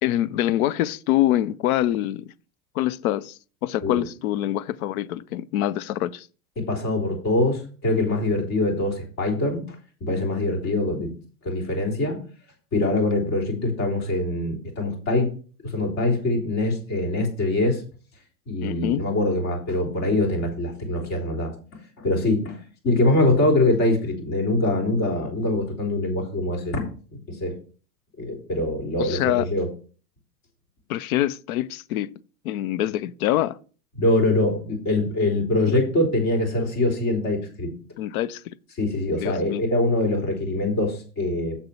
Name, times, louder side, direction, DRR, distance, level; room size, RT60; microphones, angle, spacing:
voice 1, 0.0-2.2 2.7-6.3 18.6-19.0 29.0-29.5 30.9-32.1 32.4-33.6 38.0-38.4 39.1-39.6, left 13 dB, 60° left, 0.7 m, -25 dB
voice 2, 6.6-11.1 11.4-12.2 12.7-15.3 15.6-17.8 18.5-22.6 22.8-26.8 27.1-27.5 28.2-29.7 34.0-37.7 38.8-41.6, left 2 dB, 30° left, 3.5 m, -23 dB
7.6 x 6.6 x 4.3 m
hypercardioid pair, 130°, 49 cm